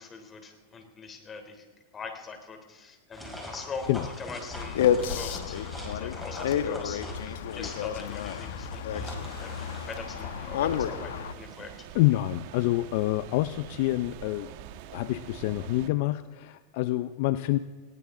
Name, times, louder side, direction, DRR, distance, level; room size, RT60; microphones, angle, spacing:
voice 1, 0.0-1.7 1.9-3.9 4.2-11.9, left 5 dB, 25° left, 5 dB, 3.3 m, -42 dB
sound 1, 3.1-10.0, left 1 dB, ahead, 4.9 m, -42 dB
sound 2, 4.5-11.3, left 9 dB, 75° left, 1.0 m, -30 dB
sound 3, 9.0-15.9, right 11 dB, 60° right, 1.2 m, -45 dB
voice 2, 11.9-14.5 14.9-17.6, left 17 dB, 60° left, 14 dB, 0.5 m, -27 dB
20.0 x 17.5 x 3.8 m, 1.4 s
hypercardioid pair, 110°, 0 cm